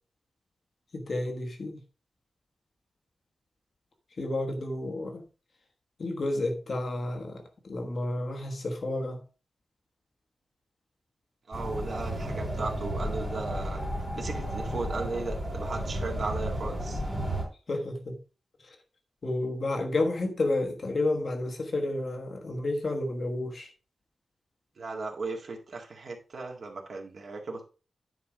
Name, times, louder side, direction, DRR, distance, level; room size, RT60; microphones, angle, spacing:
voice 1, 0.9-1.8 4.2-5.2 6.0-9.2 17.7-18.2 18.6-18.8 19.2-23.7, left 2 dB, 45° left, 1.3 m, -31 dB
sound 1, 11.5-17.4, equal, 5° right, 3.7 m, -33 dB
voice 2, 11.5-13.8 14.1-17.0 24.8-27.7, right 3 dB, 60° right, 1.9 m, -36 dB
9.7 x 4.9 x 4.9 m
wide cardioid pair, 175°, 0 cm